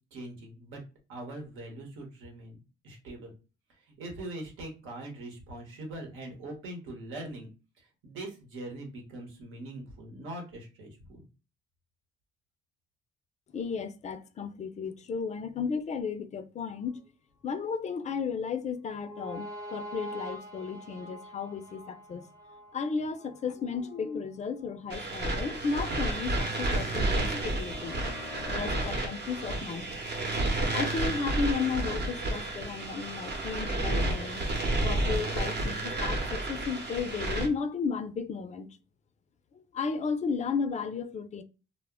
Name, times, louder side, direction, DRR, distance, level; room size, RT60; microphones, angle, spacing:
voice 1, 0.1-0.8 1.1-3.3 3.9-7.5 8.0-11.3, right 1 dB, 90° right, 1.0 m, -42 dB
voice 2, 13.5-17.0 17.4-22.2 22.7-28.0 28.5-29.9 30.7-34.4 34.8-38.7 39.5-41.4, left 5 dB, 35° left, 0.4 m, -34 dB
sound 1, 18.9-24.1 24.6-24.7 27.5-29.0, left 1 dB, 15° right, 0.6 m, -44 dB
sound 2, 24.9-37.5, right 2 dB, 55° right, 0.8 m, -31 dB
2.1 x 2.0 x 3.4 m
cardioid pair, 90°, 20 cm